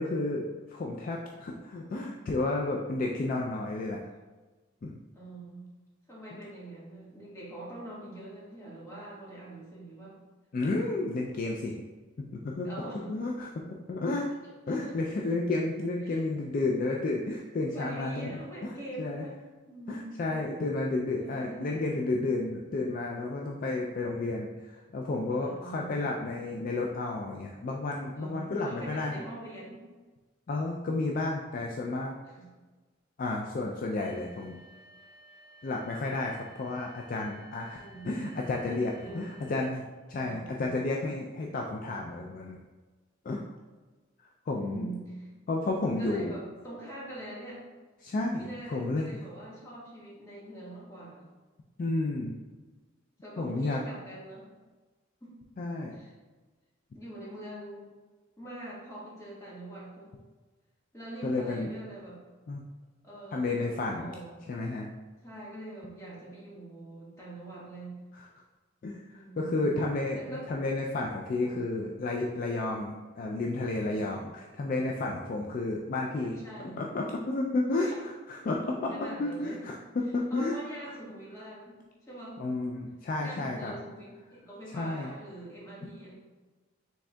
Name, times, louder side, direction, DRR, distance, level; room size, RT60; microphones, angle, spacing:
voice 1, 0.0-4.0 4.8-4.9 6.3-6.4 10.5-11.7 12.2-12.7 13.1-13.5 13.9-14.3 14.7-18.7 19.0-19.3 19.9-29.2 30.5-32.2 33.2-34.6 35.6-42.6 43.3-43.4 44.5-44.9 45.5-46.4 48.0-49.2 51.8-52.3 53.4-53.8 55.6-56.0 61.2-61.7 62.5-62.6 63.3-64.1 64.5-64.9 68.1-68.3 68.8-76.4 76.8-79.8 80.1-80.6 82.4-83.7 84.7-85.1, left 2 dB, 40° left, 0 dB, 0.3 m, -32 dB
voice 2, 5.1-5.7 6.1-10.1 12.6-13.2 14.7-14.9 16.0-16.2 17.7-20.2 21.1-21.8 25.4-25.9 28.2-29.8 32.2-32.5 37.8-38.3 39.0-39.2 40.2-40.7 44.5-45.3 46.0-47.6 48.4-51.3 53.2-54.4 55.2-55.3 55.9-56.1 56.9-57.9 58.4-60.1 60.9-62.2 63.0-64.5 65.2-68.0 69.1-69.7 70.1-70.4 71.4-71.7 76.2-76.8 77.7-78.0 78.8-79.6 80.3-81.8 82.1-82.4 83.2-86.1, right 1 dB, 15° left, -7 dB, 1.4 m, -44 dB
sound 1, 34.0-39.6, right 1 dB, 50° right, 1.5 m, -55 dB
6.0 x 3.5 x 2.2 m, 1.3 s
head